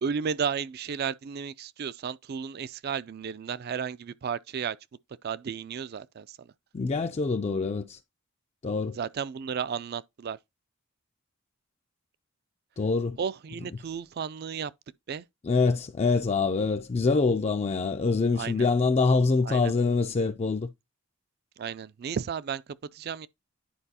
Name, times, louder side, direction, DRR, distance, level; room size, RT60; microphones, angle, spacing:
voice 1, 0.0-4.8 5.2-6.5 8.9-10.4 13.2-14.7 15.1-15.2 18.3-18.7 19.4-19.7 21.6-22.6 22.9-23.3, right 7 dB, 45° right, 0.3 m, -33 dB
voice 2, 6.7-8.0 8.6-9.0 12.8-13.2 15.4-20.7, left 4 dB, 30° left, 0.3 m, -25 dB
10.0 x 4.6 x 2.8 m
head